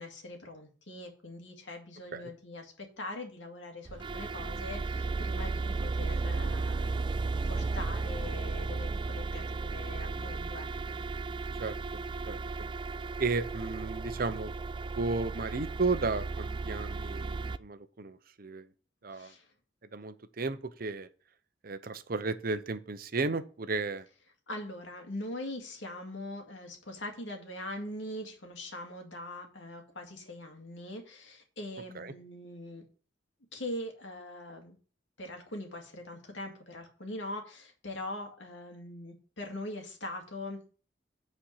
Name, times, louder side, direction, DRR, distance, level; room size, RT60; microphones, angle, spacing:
voice 1, 0.0-11.0 19.1-19.5 24.5-32.8 33.5-34.8 35.2-40.6, left 1 dB, 85° left, 3 dB, 2.1 m, -42 dB
sound 1, 3.9-17.6, right 3 dB, 25° right, 0.3 m, -34 dB
voice 2, 11.6-12.0 12.3-12.4 13.2-14.5 15.0-18.7 19.0-19.3 19.9-21.1 21.6-24.1 31.9-32.1, right 3 dB, 50° right, 12 dB, 0.7 m, -34 dB
8.8 x 4.4 x 6.4 m, 0.40 s
head